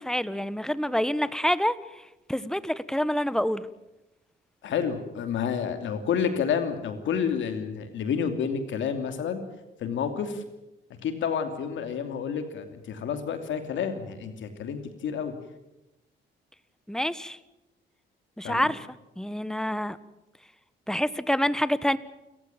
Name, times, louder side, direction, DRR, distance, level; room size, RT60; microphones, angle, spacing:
voice 1, 0.0-1.7 2.3-3.6 16.9-17.4 18.4-18.9 19.2-20.0 20.9-22.0, equal, 5° left, 16 dB, 1.2 m, -27 dB
voice 2, 4.6-9.4 9.8-10.4 11.0-15.3 18.4-18.7, left 7 dB, 75° left, 7 dB, 2.9 m, -29 dB
29.0 x 15.0 x 8.9 m, 0.94 s
cardioid pair, 90°, 20 cm